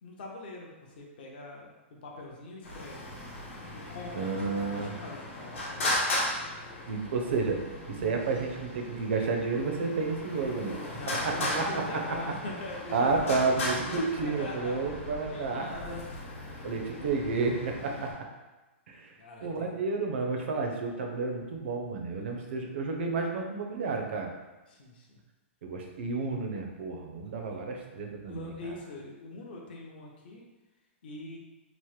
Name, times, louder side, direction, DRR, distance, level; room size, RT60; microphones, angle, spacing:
voice 1, 0.0-3.2 3.7-5.9 10.7-15.0 15.3-16.3 19.2-19.7 22.2-22.5 24.7-25.2 27.5-27.6 28.2-30.4 31.0-31.4, left 2 dB, 50° left, -1 dB, 0.5 m, -43 dB
Traffic noise roadway noise, 2.6-18.1, left 1 dB, 80° left, 0.9 m, -37 dB
voice 2, 4.1-4.9 6.9-7.6 7.9-10.7 11.1-11.8 12.9-15.6 16.6-18.1 18.9-19.1 19.4-24.3 25.6-28.7, right 4 dB, 60° right, 2 dB, 0.5 m, -31 dB
2.9 x 2.0 x 3.1 m, 1.1 s
hypercardioid pair, 175°, 7 cm